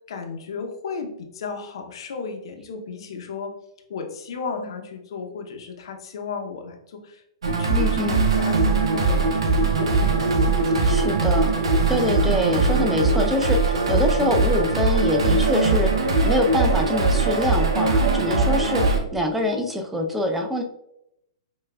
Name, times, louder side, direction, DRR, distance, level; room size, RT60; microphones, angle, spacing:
voice 1, 0.1-3.5 3.9-7.2 7.6-7.8 8.2-10.9, left 5 dB, 70° left, 4 dB, 0.7 m, -34 dB
sound 1, 7.4-19.0, right 3 dB, 85° right, 0.7 m, -21 dB
voice 2, 7.7-8.2 10.8-11.5 11.9-15.9 16.2-20.6, left 1 dB, 5° right, 4 dB, 0.5 m, -25 dB
5.8 x 2.3 x 2.2 m, 0.80 s
hypercardioid pair, 125°, 3 cm